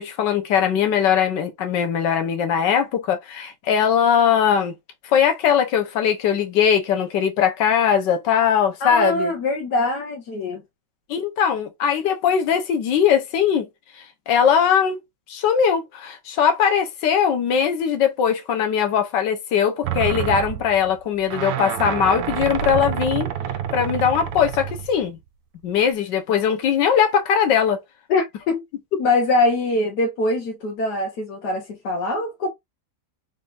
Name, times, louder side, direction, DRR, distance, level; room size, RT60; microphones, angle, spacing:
voice 1, 0.0-4.7 5.0-9.3 11.1-13.7 14.3-15.0 15.3-23.3 23.7-25.2 25.6-27.8, left 8 dB, 85° left, 1.5 m, -20 dB
voice 2, 8.8-10.6 28.1-28.6 29.0-32.5, left 2 dB, 65° left, 1.6 m, -23 dB
sound 1, 19.8-25.1 25.8-25.9, right 10 dB, 70° right, 1.0 m, -27 dB
4.0 x 3.6 x 2.4 m
omnidirectional pair, 1.9 m